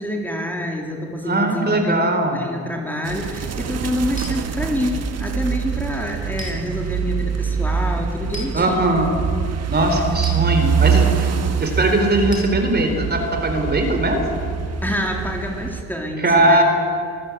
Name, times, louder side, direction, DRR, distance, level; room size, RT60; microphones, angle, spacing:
voice 1, 0.0-9.0 14.8-16.6, left 1 dB, 5° left, 0 dB, 3.3 m, -27 dB
voice 2, 1.2-2.5 8.5-9.1 9.7-11.3 11.6-14.2 16.2-16.6, right 1 dB, 35° right, 5 dB, 3.9 m, -19 dB
sound 1, 3.1-15.8, right 6 dB, 55° right, 1.6 m, -24 dB
sound 2, 4.2-4.4 6.4-6.6 8.3-8.5 10.2-10.4 12.3-12.5, left 2 dB, 25° left, 3.5 m, -34 dB
25.5 x 14.5 x 8.5 m, 2.3 s
cardioid pair, 90°, 30 cm